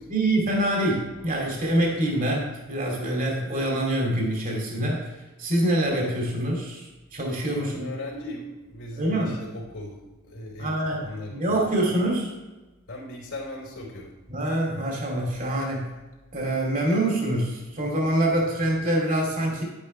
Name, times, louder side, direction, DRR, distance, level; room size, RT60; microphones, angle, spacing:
voice 1, 0.1-5.1 5.4-7.9 9.0-9.4 10.6-12.3 14.3-15.9 16.3-19.6, right 1 dB, 40° right, -1 dB, 2.5 m, -25 dB
voice 2, 7.6-11.5 12.9-14.1, left 1 dB, 70° left, -9 dB, 3.4 m, -38 dB
10.5 x 10.0 x 3.2 m, 1.2 s
head